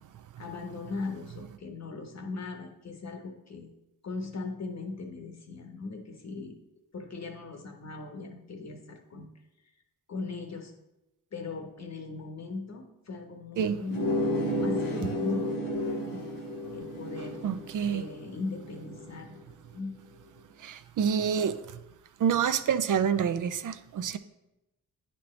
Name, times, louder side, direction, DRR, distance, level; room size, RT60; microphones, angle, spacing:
voice 1, 0.4-3.7 4.0-6.6 6.9-9.3 10.1-10.7 11.3-16.2 16.7-17.4 17.9-19.4 19.7-20.0, left 3 dB, 50° left, 1.1 m, -39 dB
sound 1, 13.9-19.2, equal, 75° left, 1.3 m, -32 dB
voice 2, 17.4-18.0 20.6-21.6 22.2-24.2, right 7 dB, 65° right, 0.5 m, -27 dB
9.5 x 4.4 x 3.2 m
cardioid pair, 80°, 34 cm